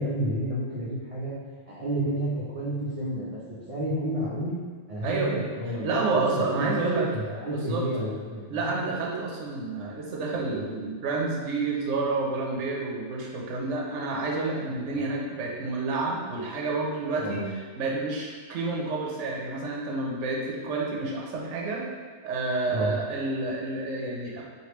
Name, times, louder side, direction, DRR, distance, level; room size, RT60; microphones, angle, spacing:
voice 1, 0.0-1.4 1.7-3.4 3.7-4.5 4.9-8.7 14.9-15.0 17.2-17.4 22.7-22.9, right 1 dB, 45° right, -9 dB, 0.5 m, -31 dB
voice 2, 5.0-5.5 5.8-7.1 7.5-7.8 8.5-21.8 22.2-24.4, right 3 dB, 70° right, -2 dB, 0.9 m, -29 dB
3.3 x 2.5 x 2.9 m, 1.5 s
omnidirectional pair, 1.4 m